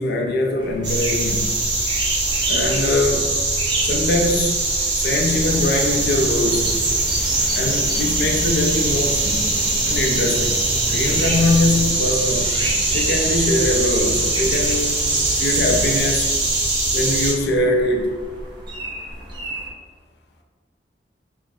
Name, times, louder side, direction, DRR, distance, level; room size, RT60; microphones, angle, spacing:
voice 1, 0.0-1.6 2.5-3.3 3.8-4.7 5.0-6.7 7.6-9.6 9.8-10.6 10.9-12.5 12.9-15.0 15.4-16.4 16.9-18.2, left 2 dB, 65° left, 2 dB, 0.5 m, -22 dB
sound 1, 0.6-19.7, right 2 dB, 25° right, 0.6 m, -32 dB
sound 2, 0.8-17.3, right 2 dB, 85° right, 1.2 m, -22 dB
sound 3, 5.4-16.0, equal, 5° right, 0.9 m, -32 dB
3.1 x 2.0 x 3.5 m, 1.5 s
head